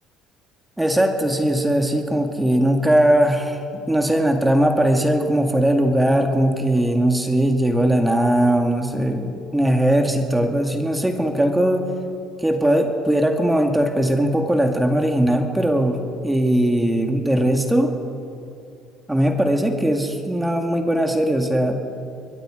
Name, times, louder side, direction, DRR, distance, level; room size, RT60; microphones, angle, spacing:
voice 1, 0.8-11.8 12.4-17.9 19.1-21.8, right 1 dB, 10° right, 4 dB, 2.1 m, -19 dB
26.0 x 22.0 x 5.1 m, 2.7 s
supercardioid pair, 100°, 0 cm